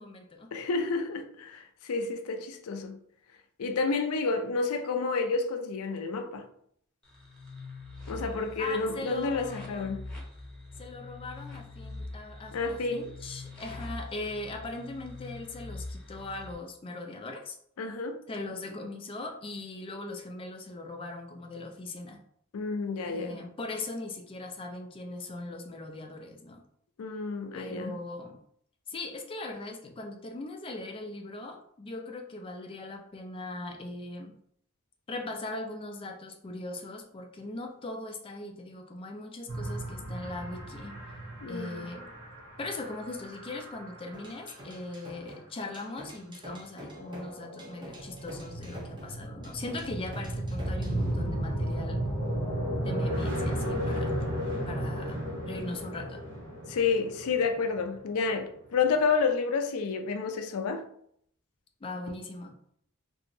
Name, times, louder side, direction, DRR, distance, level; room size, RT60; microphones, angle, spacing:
voice 1, 0.0-0.6 8.6-10.0 10.8-17.6 18.3-22.2 23.0-26.6 27.5-28.4 28.9-34.3 35.1-41.0 41.5-42.1 42.6-52.0 52.8-54.1 54.6-56.2 61.8-62.6, left 2 dB, 25° left, 0.4 m, -40 dB
voice 2, 0.5-3.0 3.6-6.5 8.1-10.0 12.5-13.1 17.8-18.2 22.5-23.4 27.0-28.0 41.4-41.9 56.6-60.9, left 4 dB, 85° left, 0.4 m, -30 dB
sound 1, 7.0-16.5, left 2 dB, 5° left, 0.9 m, -43 dB
sound 2, 39.5-44.4 46.9-58.4, right 1 dB, 60° right, 0.9 m, -34 dB
sound 3, 44.1-51.0, equal, 20° right, 0.6 m, -47 dB
2.9 x 2.7 x 2.6 m
head